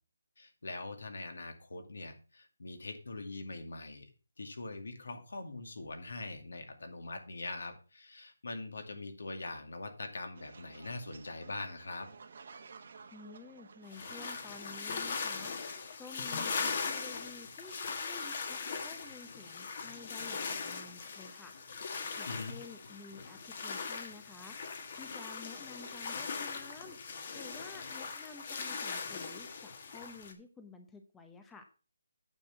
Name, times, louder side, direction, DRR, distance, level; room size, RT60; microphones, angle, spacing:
voice 1, 0.4-4.0 4.4-12.1 22.3-22.6, left 2 dB, 75° left, 5 dB, 2.4 m, -43 dB
sound 1, 10.4-15.5, right 5 dB, 50° right, 1.3 m, -54 dB
voice 2, 13.1-15.5 16.0-21.5 22.2-24.6 24.9-27.0 27.3-31.7, left 4 dB, 5° left, 5 dB, 0.7 m, -52 dB
sound 2, 13.9-30.3, left 5 dB, 40° left, 1.6 m, -40 dB
9.0 x 5.9 x 5.9 m, 0.35 s
hypercardioid pair, 165°, 0 cm